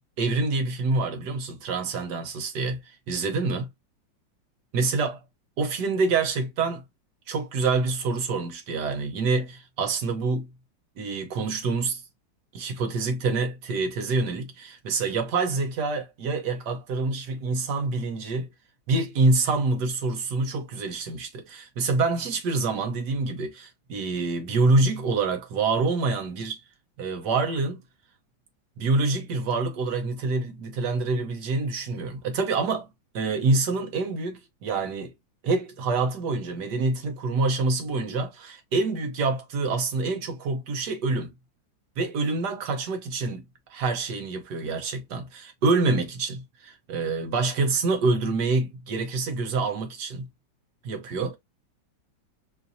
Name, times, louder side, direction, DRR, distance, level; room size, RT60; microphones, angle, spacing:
voice 1, 0.2-2.8 3.1-3.6 4.7-5.2 5.6-6.8 7.3-10.5 11.0-12.0 12.5-18.5 18.9-26.6 27.0-27.8 28.8-32.9 33.1-35.1 35.4-41.3 42.0-50.3 50.8-51.4, right 3 dB, 65° right, 1.5 m, -26 dB
4.4 x 2.7 x 2.6 m
omnidirectional pair, 2.0 m